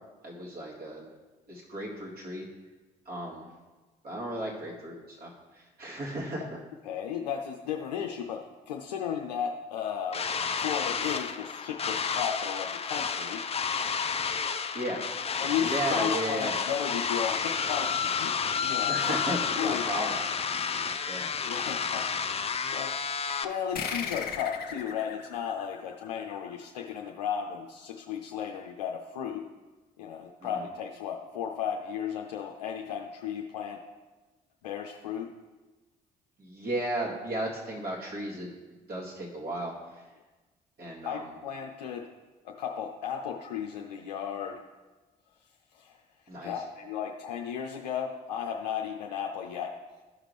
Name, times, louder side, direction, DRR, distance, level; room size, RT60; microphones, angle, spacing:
voice 1, 0.2-1.1 1.5-2.4 3.1-3.5 4.0-6.4 14.7-15.0 15.6-16.6 18.9-20.2 21.1-21.3 30.4-30.6 36.4-38.5 38.9-39.7 40.8-41.2 46.3-46.5, right 1 dB, 50° right, -5 dB, 2.1 m, -35 dB
voice 2, 6.8-10.2 10.6-13.4 14.9-15.0 15.4-19.2 19.5-20.1 21.2-22.1 22.7-22.9 23.3-29.5 30.0-33.8 34.6-35.3 41.0-42.1 42.4-44.6 45.7-46.0 46.4-49.7, left 8 dB, 80° left, 1 dB, 0.5 m, -34 dB
sound 1, 10.1-23.4, left 6 dB, 30° left, 0.6 m, -31 dB
sound 2, 23.8-26.8, left 7 dB, 50° left, 1.0 m, -37 dB
13.0 x 5.0 x 3.2 m, 1.2 s
hypercardioid pair, 45°, 21 cm